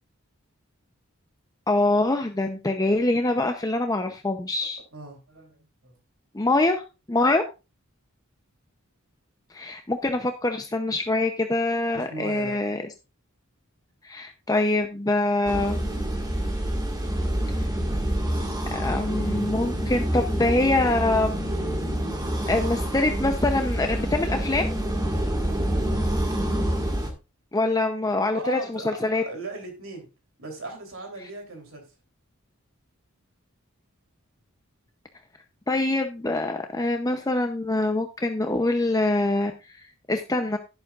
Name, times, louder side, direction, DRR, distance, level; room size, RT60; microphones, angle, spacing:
voice 1, 1.7-4.8 6.3-6.8 7.1-7.4 9.5-12.8 14.0-15.9 18.7-21.3 22.5-24.8 27.5-29.2 35.7-40.6, left 2 dB, 15° left, 5 dB, 0.7 m, -24 dB
voice 2, 4.6-6.0 11.9-12.6 28.3-30.1 30.4-31.9, right 2 dB, 70° right, 3 dB, 3.4 m, -38 dB
sound 1, 15.5-27.1, right 1 dB, 20° right, 1.8 m, -27 dB
11.0 x 10.5 x 2.4 m, 0.29 s
head